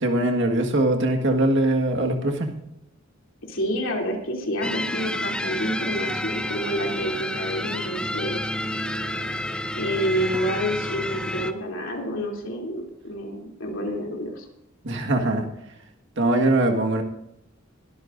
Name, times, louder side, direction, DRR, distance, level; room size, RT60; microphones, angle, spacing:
voice 1, 0.0-2.5 14.8-15.5 16.2-17.0, right 1 dB, 60° right, 3 dB, 1.7 m, -22 dB
voice 2, 3.5-8.4 9.7-14.5, equal, 65° left, 0 dB, 3.1 m, -28 dB
sound 1, 4.6-11.5, left 1 dB, 5° left, 0.6 m, -29 dB
21.5 x 12.5 x 2.6 m, 0.81 s
head